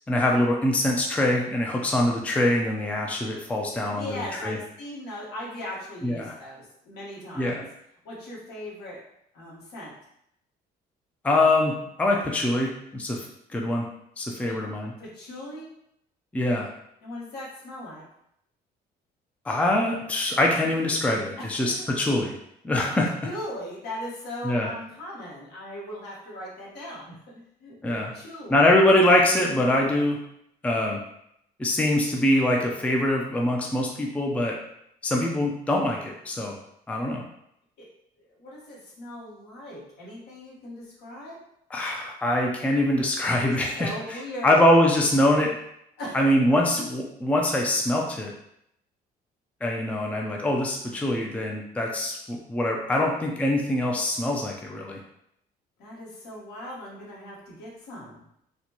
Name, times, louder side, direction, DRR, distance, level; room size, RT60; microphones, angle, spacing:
voice 1, 0.1-4.6 6.0-6.3 7.4-7.6 11.2-13.2 13.5-13.8 14.2-14.9 16.3-16.7 19.5-22.3 22.6-23.1 24.4-24.7 27.8-28.1 28.5-30.2 30.6-31.0 31.6-34.5 35.0-36.5 36.9-37.2 41.7-44.2 44.4-45.6 46.1-48.3 49.6-55.0, left 1 dB, 10° left, 0 dB, 0.4 m, -23 dB
voice 2, 3.9-7.6 8.0-9.0 9.3-9.9 14.4-14.6 15.0-15.7 17.0-18.0 21.4-21.9 23.2-28.6 37.8-37.9 38.4-41.4 43.2-44.7 46.0-46.2 55.8-58.2, left 1 dB, 75° left, -5 dB, 1.4 m, -39 dB
4.1 x 2.2 x 2.9 m, 0.76 s
cardioid pair, 110°, 17 cm